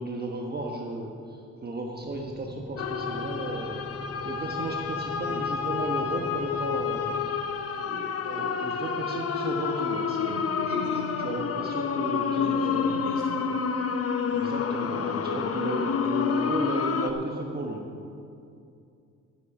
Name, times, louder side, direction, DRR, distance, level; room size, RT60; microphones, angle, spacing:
voice 1, 0.0-3.8 4.2-7.1 7.8-10.9 11.2-12.9 14.3-17.9, right 2 dB, 30° right, 1 dB, 1.2 m, -34 dB
sound 1, 2.0-7.3, equal, 5° right, 3.1 m, -42 dB
sound 2, 2.8-17.1, left 6 dB, 50° left, 0.8 m, -29 dB
voice 2, 10.2-11.4 12.3-13.7, left 2 dB, 80° left, -7 dB, 2.5 m, -38 dB
12.0 x 9.8 x 5.3 m, 2.5 s
cardioid pair, 90°, 30 cm